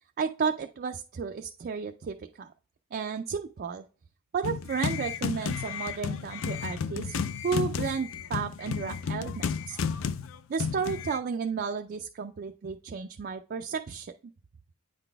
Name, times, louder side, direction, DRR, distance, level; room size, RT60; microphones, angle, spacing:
voice 1, 0.2-2.5 2.9-3.8 4.3-9.8 10.5-14.1, right 6 dB, 45° right, 5 dB, 0.3 m, -33 dB
sound 1, 4.4-11.2, left 6 dB, 65° left, 0.4 m, -32 dB
8.9 x 3.9 x 3.4 m, 0.38 s
head